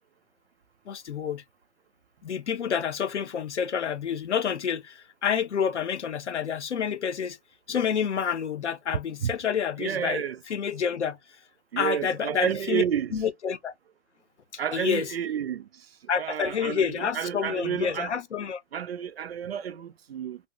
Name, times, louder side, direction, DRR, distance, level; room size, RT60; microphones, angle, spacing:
voice 1, 0.9-1.4 2.2-7.4 7.7-11.2 11.8-12.8 13.1-13.7 14.7-15.1 16.1-18.6, left 7 dB, 85° left, 0.8 m, -28 dB
voice 2, 9.8-10.4 11.7-13.1 14.6-15.6 16.1-18.1 18.7-20.4, right 9 dB, 65° right, 0.5 m, -30 dB
2.8 x 2.1 x 2.9 m
hypercardioid pair, 170°, 34 cm